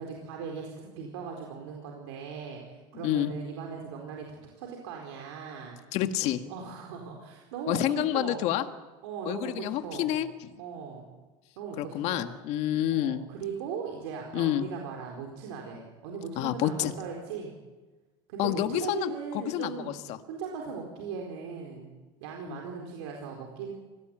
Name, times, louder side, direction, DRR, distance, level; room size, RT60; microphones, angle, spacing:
voice 1, 0.0-5.8 6.5-8.5 9.0-10.1 10.6-11.1 11.6-12.3 12.9-17.5 18.3-20.0 20.3-21.9 22.2-23.7, right 6 dB, 85° right, 1 dB, 4.4 m, -39 dB
voice 2, 5.9-6.5 7.7-8.6 9.2-10.3 11.8-13.2 14.3-14.6 16.4-16.9 18.4-20.2 22.5-22.6, left 12 dB, 55° left, 8 dB, 1.6 m, -28 dB
25.5 x 18.5 x 9.0 m, 1.3 s
supercardioid pair, 135°, 13 cm